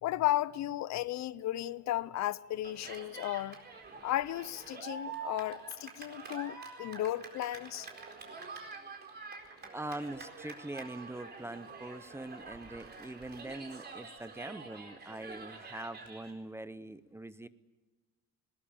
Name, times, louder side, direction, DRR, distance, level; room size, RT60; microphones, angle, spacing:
voice 1, 0.0-3.6 4.0-7.9, left 14 dB, 65° left, 0.7 m, -34 dB
Cheering, 2.6-16.3, right 4 dB, 35° right, 4.3 m, -47 dB
voice 2, 9.7-17.5, right 1 dB, 10° right, 0.7 m, -43 dB
20.5 x 20.0 x 8.7 m
cardioid pair, 150°, 30 cm